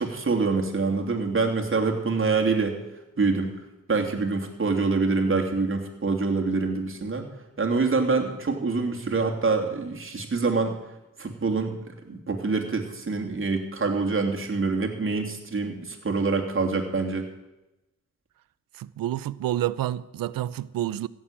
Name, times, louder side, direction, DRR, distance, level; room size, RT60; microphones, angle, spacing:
voice 1, 0.0-2.8 3.2-3.5 3.9-7.3 7.6-10.7 11.2-17.2, right 4 dB, 40° right, 2.9 m, -25 dB
voice 2, 18.7-21.1, right 13 dB, 85° right, 0.6 m, -29 dB
15.5 x 7.3 x 8.7 m
cardioid pair, 65°, 33 cm